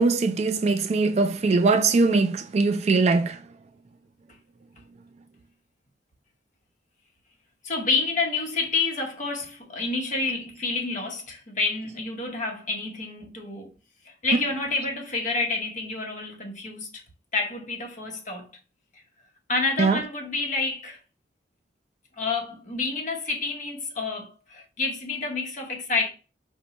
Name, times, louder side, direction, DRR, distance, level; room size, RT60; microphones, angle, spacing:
voice 1, 0.0-3.4 19.8-20.0, right 3 dB, 40° right, 0.3 m, -21 dB
voice 2, 7.6-13.7 14.0-17.0 17.3-18.5 19.5-21.0 22.2-26.1, left 3 dB, 45° left, 0.9 m, -29 dB
5.2 x 2.1 x 2.8 m
head